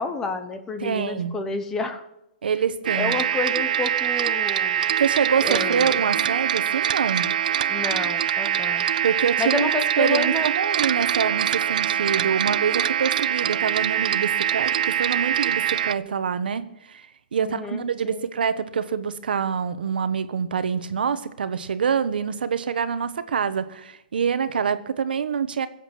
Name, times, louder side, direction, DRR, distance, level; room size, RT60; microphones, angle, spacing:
voice 1, 0.0-2.0 2.9-4.8 5.4-6.0 7.7-8.9 9.4-10.5 17.4-18.2, left 3 dB, 10° left, 8 dB, 0.9 m, -30 dB
voice 2, 0.8-1.3 2.4-3.2 5.0-7.3 9.0-17.1 17.3-25.7, right 6 dB, 90° right, 12 dB, 1.2 m, -25 dB
sound 1, 2.9-16.0, right 10 dB, 60° right, 0.5 m, -24 dB
20.0 x 8.1 x 6.2 m, 0.86 s
hypercardioid pair, 170°, 5 cm